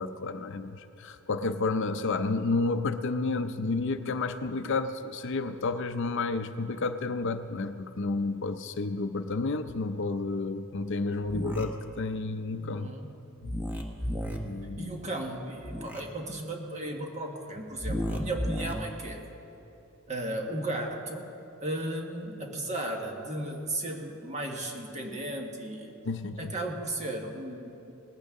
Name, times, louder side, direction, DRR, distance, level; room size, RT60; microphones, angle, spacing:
voice 1, 0.0-12.9 13.4-13.7 14.4-14.9 26.0-26.5, left 3 dB, 55° left, 9 dB, 0.5 m, -31 dB
sound 1, 11.3-11.6 13.4-14.4 15.6-16.0 17.8-18.7, equal, 10° right, 1.0 m, -32 dB
voice 2, 12.6-13.2 14.8-19.2 20.1-21.3 21.6-25.9 26.4-27.9, right 1 dB, 30° right, 2 dB, 1.4 m, -35 dB
19.0 x 15.0 x 3.7 m, 2.9 s
head